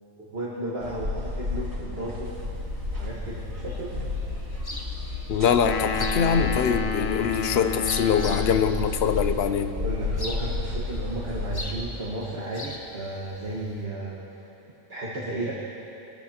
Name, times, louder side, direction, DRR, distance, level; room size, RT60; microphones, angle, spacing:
voice 1, 0.1-2.3 2.9-3.9 9.7-14.4 14.9-15.5, right 1 dB, 50° right, -7 dB, 1.6 m, -34 dB
sound 1, 0.8-11.8, left 2 dB, 80° right, 2.4 m, -32 dB
sound 2, 2.2-13.9, left 1 dB, 20° left, 0.9 m, -42 dB
voice 2, 5.3-9.8, left 7 dB, 60° left, 10 dB, 0.7 m, -23 dB
sound 3, 5.6-9.0, left 6 dB, 85° left, 1.1 m, -30 dB
20.5 x 14.0 x 2.9 m, 3.0 s
omnidirectional pair, 1.4 m